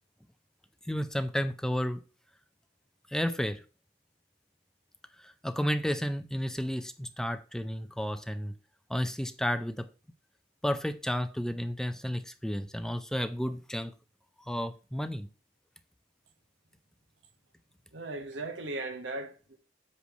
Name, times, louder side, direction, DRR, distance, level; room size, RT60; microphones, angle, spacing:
voice 1, 0.8-2.0 3.1-3.6 5.2-8.5 8.9-9.9 10.6-13.9 14.5-15.3, equal, 5° left, 0.4 m, -32 dB
voice 2, 17.9-19.6, right 2 dB, 80° right, 1.2 m, -37 dB
8.2 x 3.2 x 6.4 m
head